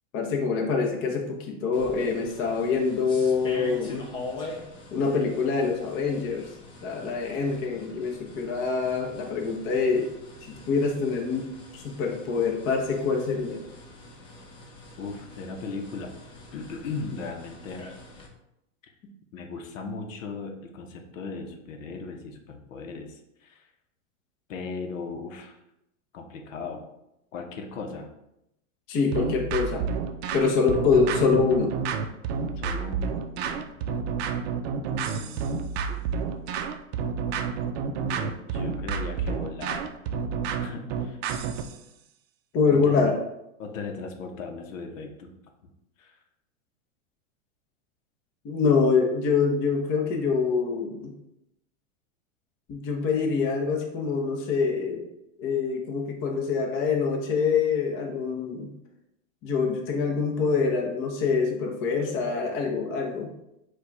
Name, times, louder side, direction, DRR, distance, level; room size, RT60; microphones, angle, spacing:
voice 1, 0.1-4.1 4.4-4.5 4.9-6.5 6.8-10.1 10.7-11.5 11.7-13.6 28.9-29.8 30.3-31.7 42.5-43.1 48.4-51.1 52.7-55.0 55.4-58.7 59.4-63.3, left 5 dB, 35° left, 1 dB, 0.8 m, -25 dB
sound 1, 1.7-18.3, left 2 dB, 15° left, 0.3 m, -44 dB
voice 2, 15.0-16.2 16.5-17.9 18.8-18.9 19.3-23.7 24.5-25.6 26.1-26.8 27.3-28.1 32.6-33.8 34.8-36.1 37.9-39.9 40.6-41.2 42.7-43.1 43.6-45.3 46.0-46.2, left 4 dB, 75° left, 4 dB, 0.8 m, -38 dB
sound 2, 29.1-41.8, right 6 dB, 55° right, 0.5 m, -30 dB
4.4 x 2.4 x 4.6 m, 0.84 s
supercardioid pair, 135°, 39 cm